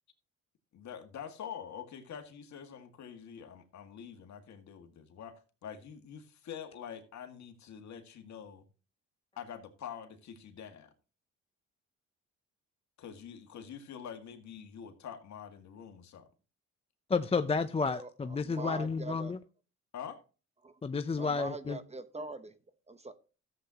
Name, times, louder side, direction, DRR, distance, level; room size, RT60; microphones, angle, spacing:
voice 1, 0.7-8.6 9.4-10.9 13.0-16.3 19.9-20.2, left 8 dB, 65° left, 2.0 m, -46 dB
voice 2, 17.1-19.4 20.8-21.8, left 4 dB, 20° left, 0.5 m, -31 dB
voice 3, 18.4-19.3 20.6-20.7 21.2-22.5 22.9-23.1, right 3 dB, 20° right, 1.0 m, -42 dB
14.0 x 7.8 x 2.9 m
cardioid pair, 90°, 30 cm